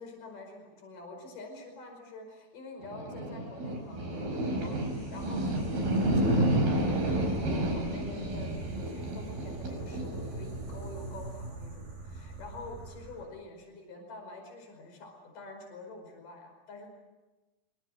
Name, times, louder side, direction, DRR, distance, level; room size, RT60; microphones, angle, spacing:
voice 1, 0.0-16.9, left 3 dB, 65° left, 3 dB, 6.6 m, -46 dB
sound 1, 2.8-13.2, right 1 dB, 85° right, 7.2 m, -31 dB
25.5 x 25.5 x 7.8 m, 1.1 s
omnidirectional pair, 4.2 m